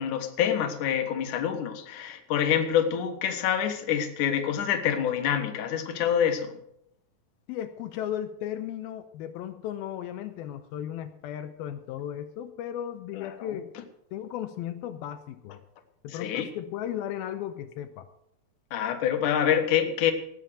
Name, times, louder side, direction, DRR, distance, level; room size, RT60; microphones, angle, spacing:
voice 1, 0.0-6.5 13.1-13.3 16.1-16.5 18.7-20.1, left 9 dB, 65° left, 6 dB, 2.7 m, -26 dB
voice 2, 7.5-13.7 14.1-15.6 16.0-18.1, left 10 dB, 85° left, 8 dB, 2.6 m, -35 dB
18.5 x 7.5 x 6.3 m, 0.76 s
omnidirectional pair, 4.3 m